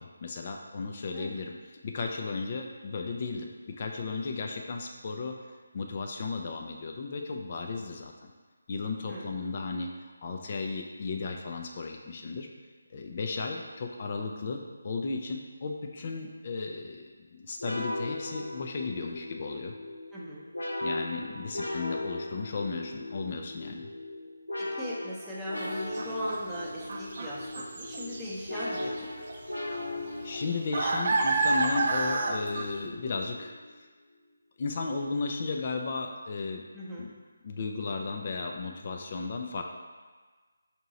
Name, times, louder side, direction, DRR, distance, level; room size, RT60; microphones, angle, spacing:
voice 1, 0.0-1.5 1.8-5.4 5.7-8.1 8.7-9.9 10.2-12.5 12.9-19.7 20.8-23.9 30.2-33.5 34.6-36.6 37.0-37.1 37.4-39.6, left 4 dB, 40° left, 2 dB, 0.4 m, -35 dB
sound 1, 17.6-33.8, left 1 dB, 90° left, 0.8 m, -38 dB
voice 2, 20.1-20.5 24.6-29.1 36.7-37.1, equal, 5° right, -9 dB, 0.7 m, -38 dB
sound 2, 25.5-25.6 26.0-28.3 28.6-29.0 29.3-29.4 29.8-32.9, right 3 dB, 45° right, 0.5 m, -29 dB
4.5 x 2.8 x 4.0 m, 1.4 s
figure-of-eight pair, 160°, 0 cm